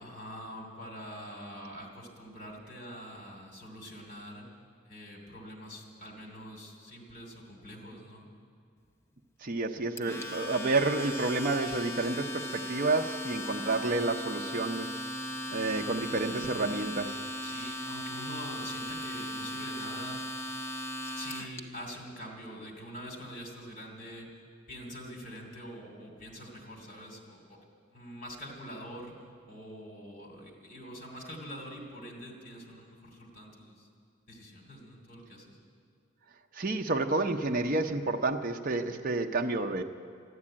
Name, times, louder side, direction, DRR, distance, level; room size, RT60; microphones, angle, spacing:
voice 1, 0.0-4.5 4.8-8.3 17.4-20.2 21.1-24.3 24.7-27.6 27.9-29.1 29.5-33.9 34.3-35.6, equal, 40° left, 1 dB, 2.8 m, -45 dB
voice 2, 9.4-14.9 15.5-17.2 17.4-17.6 36.5-39.8, right 3 dB, 45° right, 4 dB, 0.7 m, -30 dB
Domestic sounds home sounds, 10.0-21.6, equal, 15° left, 0.7 m, -37 dB
13.0 x 11.0 x 8.6 m, 2.2 s
head